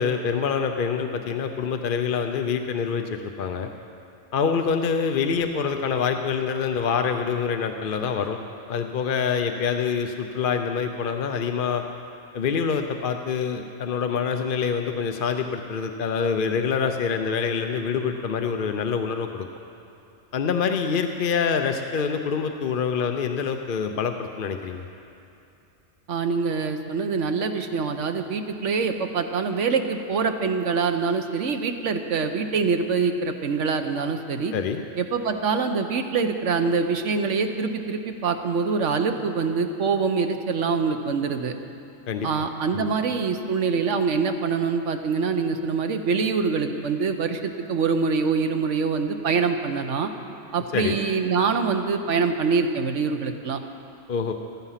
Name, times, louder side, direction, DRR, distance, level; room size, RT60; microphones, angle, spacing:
voice 1, 0.0-3.7 4.3-8.4 8.7-11.8 12.3-19.5 20.3-24.8 34.5-34.8 42.1-42.3 42.7-42.9 50.7-51.0 54.1-54.3, left 6 dB, 50° left, 6 dB, 0.7 m, -26 dB
voice 2, 26.1-34.5 35.0-41.5 42.2-50.1 50.5-53.6, right 5 dB, 70° right, 6 dB, 1.3 m, -25 dB
14.5 x 14.0 x 5.8 m, 2.8 s
omnidirectional pair, 1.3 m